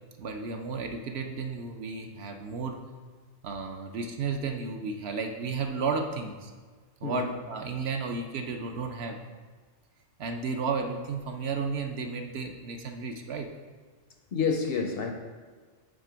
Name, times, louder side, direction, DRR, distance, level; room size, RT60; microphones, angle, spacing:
voice 1, 0.2-2.8 3.4-6.5 7.0-9.2 10.2-13.5, right 4 dB, 65° right, 4 dB, 0.8 m, -33 dB
voice 2, 14.3-15.1, left 5 dB, 60° left, 4 dB, 0.7 m, -28 dB
7.4 x 3.4 x 5.0 m, 1.5 s
omnidirectional pair, 1.3 m